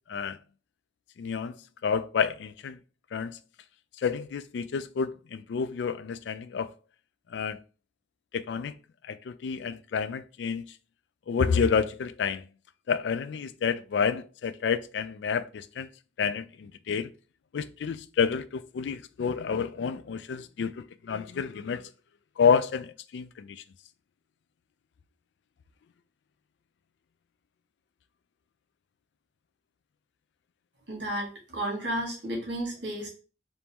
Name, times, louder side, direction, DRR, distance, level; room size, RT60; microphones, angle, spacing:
voice 1, 1.2-1.6 1.8-2.8 3.1-3.4 4.0-6.7 7.3-7.6 8.3-8.7 9.1-10.6 11.3-12.4 12.9-15.9 16.2-17.1 17.5-21.9 22.4-23.6, left 6 dB, 70° left, 0.3 m, -29 dB
voice 2, 30.9-33.1, right 1 dB, 65° right, 2.3 m, -32 dB
4.4 x 2.6 x 3.5 m
head